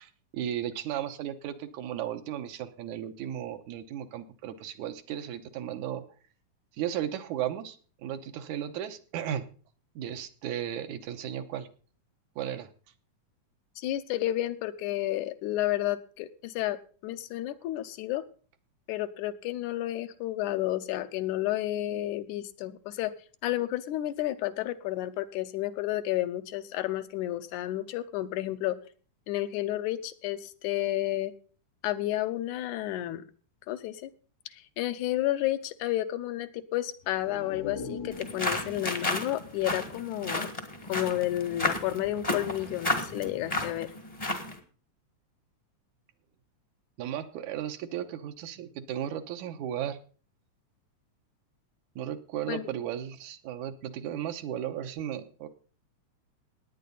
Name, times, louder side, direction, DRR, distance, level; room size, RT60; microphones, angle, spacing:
voice 1, 0.0-6.0 6.8-9.5 10.0-11.7 12.4-12.7 47.0-50.0 52.0-55.5, right 10 dB, 80° right, 8 dB, 2.3 m, -35 dB
voice 2, 13.8-18.2 18.9-23.1 23.4-28.8 29.3-31.3 31.8-33.2 33.7-34.1 34.5-40.5 40.9-43.9 52.5-52.7, left 14 dB, 80° left, 10 dB, 2.2 m, -31 dB
sound 1, 37.0-40.7 41.1-41.2, left 5 dB, 65° left, 0.7 m, -43 dB
sound 2, 38.1-44.6, left 2 dB, 30° left, 0.7 m, -32 dB
17.5 x 9.3 x 4.0 m, 0.41 s
omnidirectional pair, 3.5 m